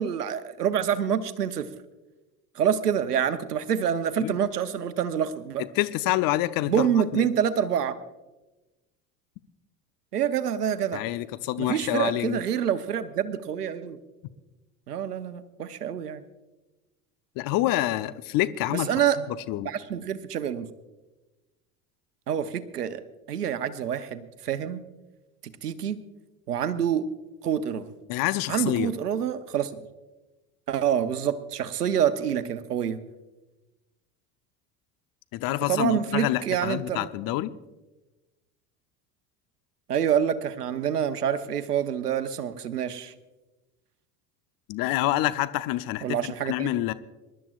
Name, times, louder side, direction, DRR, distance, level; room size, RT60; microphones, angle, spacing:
voice 1, 0.0-1.7 2.5-5.6 6.7-8.0 10.1-11.0 11.6-14.0 14.9-16.2 18.7-19.2 19.6-20.7 22.3-23.0 23.3-24.8 25.6-26.0 26.5-27.1 27.4-27.9 28.5-29.7 30.7-33.0 35.7-37.1 39.9-43.1 46.0-46.7, right 8 dB, 85° right, 12 dB, 0.9 m, -27 dB
voice 2, 5.8-7.3 10.9-12.4 17.4-18.9 19.5-19.7 28.1-28.9 35.3-37.5 44.7-46.2 46.4-46.9, left 15 dB, 50° left, 13 dB, 0.8 m, -27 dB
26.5 x 12.5 x 2.5 m, 1.1 s
hypercardioid pair, 70°, 46 cm